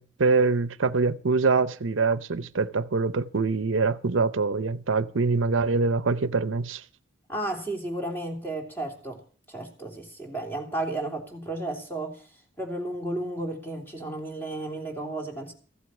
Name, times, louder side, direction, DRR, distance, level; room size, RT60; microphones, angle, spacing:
voice 1, 0.0-6.8, right 4 dB, 85° right, 0.7 m, -24 dB
voice 2, 7.3-9.2 9.5-12.3 12.6-15.5, right 1 dB, 10° left, 3.4 m, -33 dB
15.5 x 7.9 x 8.4 m
head